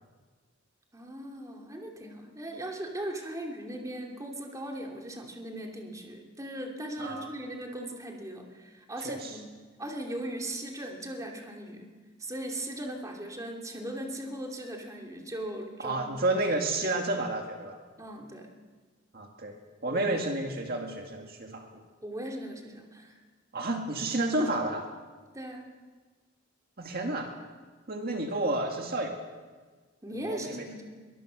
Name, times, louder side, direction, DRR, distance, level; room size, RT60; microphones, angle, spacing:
voice 1, 0.9-9.5 9.8-11.9 12.2-16.2 18.0-18.5 19.9-20.1 22.0-23.2 25.3-25.6 30.0-30.8, right 1 dB, 15° right, 1 dB, 2.7 m, -38 dB
voice 2, 9.0-9.3 15.8-17.8 19.1-19.6 19.8-21.8 23.5-24.9 26.8-27.3 27.9-29.2 30.3-30.7, right 2 dB, 50° right, 3 dB, 2.1 m, -30 dB
22.5 x 22.5 x 6.4 m, 1.4 s
head